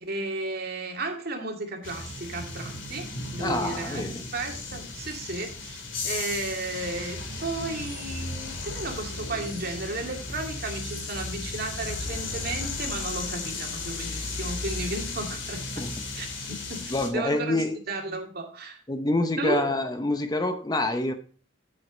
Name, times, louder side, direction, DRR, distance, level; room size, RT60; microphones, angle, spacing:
voice 1, 0.0-15.6 16.2-16.3 16.7-17.6 17.9-18.8 19.4-19.7, right 2 dB, 55° right, 2 dB, 2.2 m, -34 dB
sound 1, 1.8-17.1, left 3 dB, 75° left, 2.4 m, -35 dB
voice 2, 3.4-4.2 15.8-15.9 16.9-17.7 18.9-21.1, left 2 dB, 20° left, 8 dB, 0.8 m, -27 dB
10.0 x 7.7 x 3.9 m, 0.41 s
head